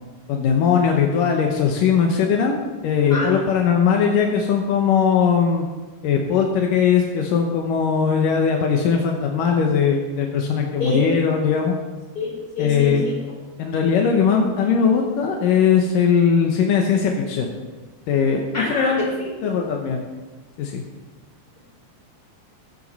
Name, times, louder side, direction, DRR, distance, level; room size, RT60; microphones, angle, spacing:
voice 1, 0.3-2.6 2.8-5.7 6.0-11.7 12.6-13.1 13.6-17.5 18.1-19.0 19.4-20.0 20.6-20.8, left 6 dB, 80° left, 2 dB, 1.9 m, -19 dB
voice 2, 12.2-13.1 18.5-18.9, left 2 dB, 20° left, -5 dB, 5.3 m, -26 dB
21.5 x 8.0 x 4.1 m, 1.3 s
omnidirectional pair, 5.3 m